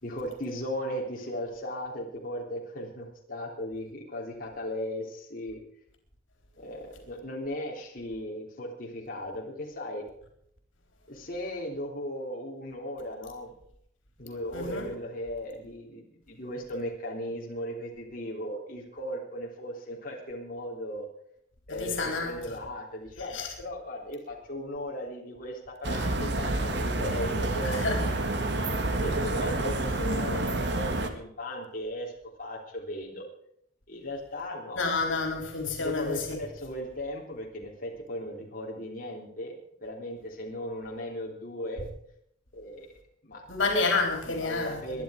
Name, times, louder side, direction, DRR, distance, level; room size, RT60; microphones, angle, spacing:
voice 1, 0.0-5.6 6.6-10.0 11.1-13.5 14.2-21.1 21.7-28.1 28.4-28.6 29.0-32.1 32.4-33.2 33.9-34.9 35.8-39.5 39.8-41.9 42.5-42.9 43.2-43.5 44.3-45.0, equal, 45° left, 3.5 m, -37 dB
voice 2, 14.5-14.9 21.7-22.6 23.3-23.5 27.6-28.1 34.8-36.4 43.5-45.0, left 3 dB, 75° left, 3.9 m, -29 dB
sound 1, 25.8-31.1, right 2 dB, 60° right, 2.1 m, -29 dB
22.0 x 11.0 x 5.1 m
head